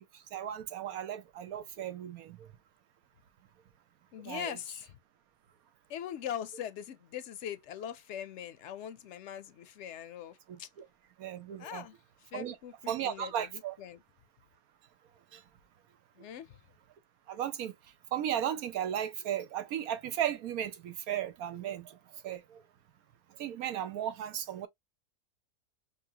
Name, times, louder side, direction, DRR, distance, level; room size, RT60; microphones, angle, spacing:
voice 1, 0.3-2.5 4.2-4.5 10.5-10.8 11.2-11.8 12.3-12.6 12.9-13.7 15.3-15.4 17.3-17.7 18.1-22.0 22.2-22.6 23.4-24.7, right 10 dB, 90° right, 1.2 m, -35 dB
voice 2, 4.1-5.0 5.9-10.7 11.6-14.0 16.2-16.6, left 10 dB, 65° left, 0.8 m, -42 dB
4.7 x 2.7 x 2.7 m
omnidirectional pair, 1.5 m